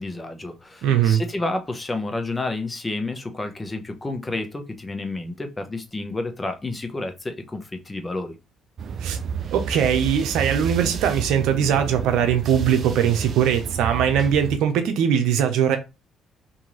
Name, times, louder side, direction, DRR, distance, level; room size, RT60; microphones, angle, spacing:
voice 1, 0.0-8.4, left 2 dB, 20° left, 0.9 m, -30 dB
voice 2, 0.8-1.2 9.0-9.2 9.5-15.8, right 8 dB, 75° right, 0.7 m, -21 dB
sound 1, 8.8-14.6, right 7 dB, 55° right, 0.3 m, -30 dB
3.0 x 2.8 x 3.9 m
supercardioid pair, 65°, 0 cm